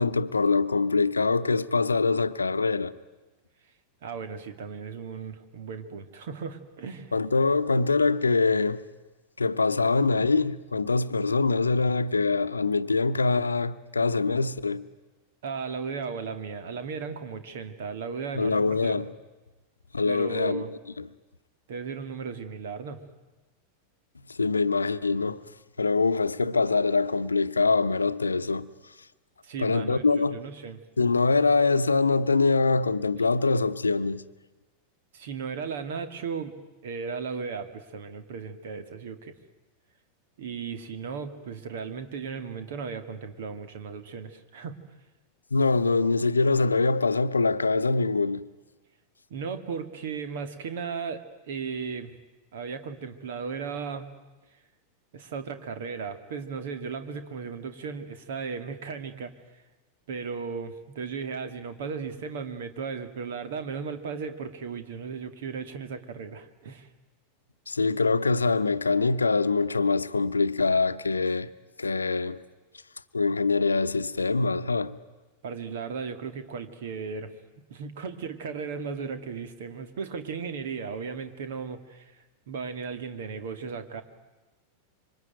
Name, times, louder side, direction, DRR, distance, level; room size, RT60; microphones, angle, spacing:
voice 1, 0.0-2.9 7.1-8.8 9.4-14.8 18.3-19.1 19.9-20.6 24.3-25.4 25.8-28.7 29.6-30.4 31.0-34.2 45.5-48.5 67.7-71.5 71.8-72.4 73.1-74.9, left 4 dB, 75° left, 0.9 m, -24 dB
voice 2, 4.0-7.1 15.4-19.1 20.1-20.7 21.7-23.0 29.4-30.8 35.1-36.5 36.8-39.3 40.4-44.8 49.3-52.1 52.5-54.1 55.1-59.3 60.1-66.9 75.4-77.3 77.7-82.2 82.5-84.0, right 5 dB, 55° right, 2.3 m, -36 dB
26.5 x 24.5 x 9.2 m
figure-of-eight pair, 90°, 0 cm